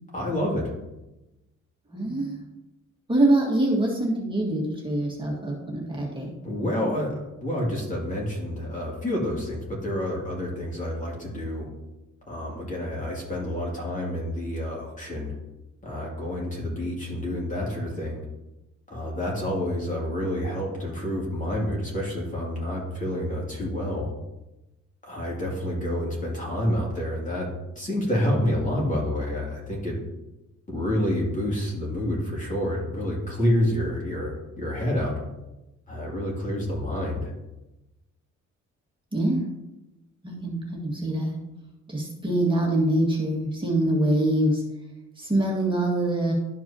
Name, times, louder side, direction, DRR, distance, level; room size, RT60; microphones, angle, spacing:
voice 1, 0.1-0.7 6.4-7.1 7.4-11.7 12.3-15.3 15.8-18.3 18.9-24.1 25.0-27.5 27.8-30.0 30.7-35.2 35.9-37.3, left 1 dB, 25° left, -4 dB, 2.5 m, -28 dB
voice 2, 1.9-2.3 3.1-6.3 39.1-39.5 40.2-41.3 41.9-44.6 45.2-46.3, right 1 dB, 15° right, -2 dB, 1.8 m, -24 dB
12.0 x 4.5 x 2.8 m, 0.99 s
cardioid pair, 90°, 30 cm